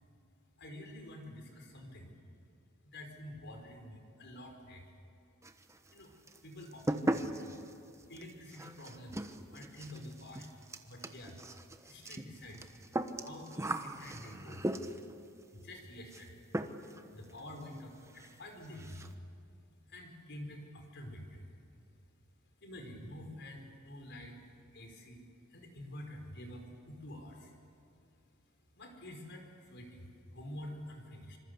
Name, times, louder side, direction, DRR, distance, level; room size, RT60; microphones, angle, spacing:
voice 1, 0.6-2.2 2.9-4.8 5.9-6.1 6.4-7.3 8.1-10.5 10.8-11.4 11.8-12.7 13.2-14.7 15.5-16.4 17.1-19.1 19.9-21.5 22.6-24.4 24.7-25.2 25.5-27.5 28.8-31.4, left 1 dB, 55° left, 4 dB, 5.0 m, -48 dB
sound 1, 5.4-6.0 6.3-15.2 16.1-16.3 16.5-17.0 17.3-17.4 17.8-17.9 18.1-18.3 18.6-19.1, right 1 dB, 15° right, 1.1 m, -38 dB
26.0 x 25.5 x 8.1 m, 2.6 s
head